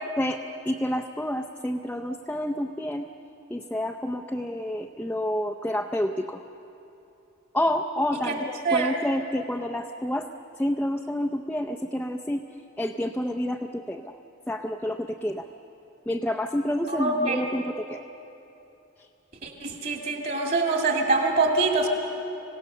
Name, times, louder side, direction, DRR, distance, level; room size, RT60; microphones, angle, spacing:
voice 1, 0.2-3.1 3.5-6.4 7.5-10.3 10.6-12.4 12.8-14.1 14.5-15.5 16.1-18.0, left 1 dB, 5° left, 3 dB, 0.5 m, -29 dB
voice 2, 16.9-17.4 19.4-21.9, right 3 dB, 50° right, 1 dB, 2.4 m, -24 dB
25.5 x 17.0 x 6.9 m, 2.9 s
head